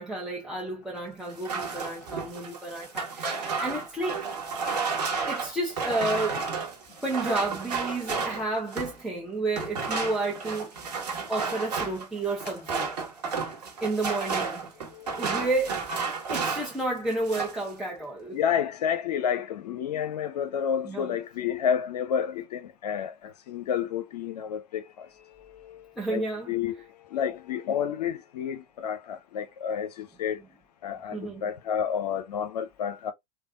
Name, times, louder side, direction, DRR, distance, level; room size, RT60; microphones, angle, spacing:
voice 1, 0.0-4.2 5.3-6.5 7.0-10.7 11.3-12.9 13.8-14.7 15.2-18.3 20.8-21.2 26.0-26.5 31.1-31.4, right 2 dB, ahead, 1.0 m, -31 dB
sound 1, 1.3-9.0 9.5-16.8 17.1-17.7, right 5 dB, 80° right, 1.2 m, -32 dB
voice 2, 14.9-15.3 18.3-25.1 25.4-26.7 27.1-30.4 30.8-33.1, left 8 dB, 75° left, 0.6 m, -30 dB
3.4 x 2.3 x 2.3 m
hypercardioid pair, 90°, 21 cm